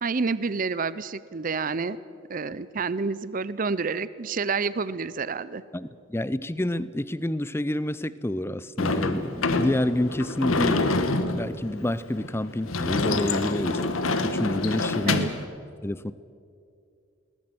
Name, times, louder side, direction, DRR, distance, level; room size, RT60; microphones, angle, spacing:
voice 1, 0.0-2.0 2.3-5.6 15.1-15.3, right 4 dB, 40° right, 17 dB, 0.6 m, -28 dB
voice 2, 5.7-10.8 11.3-13.8 14.2-15.3 15.8-16.1, left 1 dB, 10° left, 17 dB, 0.5 m, -28 dB
Sliding door / Slam, 8.8-15.4, left 3 dB, 85° left, 1.3 m, -26 dB
21.0 x 18.5 x 7.9 m, 2.4 s
head